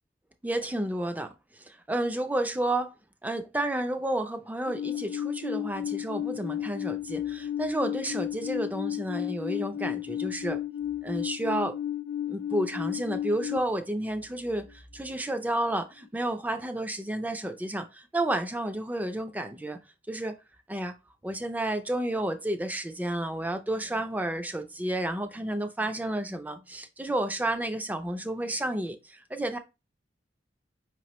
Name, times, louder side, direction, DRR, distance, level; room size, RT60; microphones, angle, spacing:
voice 1, 0.4-1.3 1.6-2.9 3.2-10.6 11.0-11.8 12.3-19.8 20.1-20.3 20.7-20.9 21.2-29.6, right 1 dB, 10° right, 0.4 m, -31 dB
Alarm, 4.7-13.6, left 11 dB, 80° left, 0.4 m, -33 dB
5.0 x 3.0 x 3.0 m
head